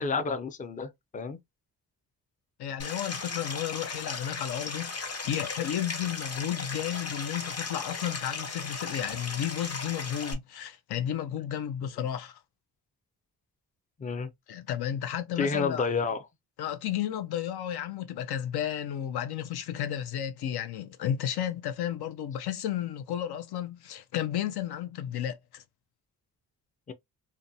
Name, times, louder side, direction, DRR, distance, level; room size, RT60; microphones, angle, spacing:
voice 1, 0.0-1.4 14.0-14.3 15.4-16.2 26.9-27.0, left 4 dB, 20° left, 0.4 m, -30 dB
voice 2, 2.6-12.4 14.5-15.9 16.6-25.6, left 10 dB, 80° left, 0.5 m, -33 dB
Stream, 2.8-10.3, left 4 dB, 40° left, 0.8 m, -36 dB
2.5 x 2.2 x 2.6 m
cardioid pair, 75°, 38 cm